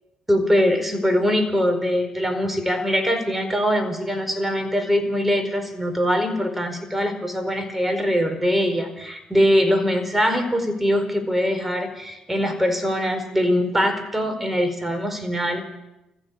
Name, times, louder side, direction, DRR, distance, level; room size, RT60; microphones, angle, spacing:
voice 1, 0.3-15.7, equal, 10° right, 6 dB, 4.7 m, -22 dB
20.5 x 15.0 x 8.5 m, 0.94 s
cardioid pair, 80°, 2 cm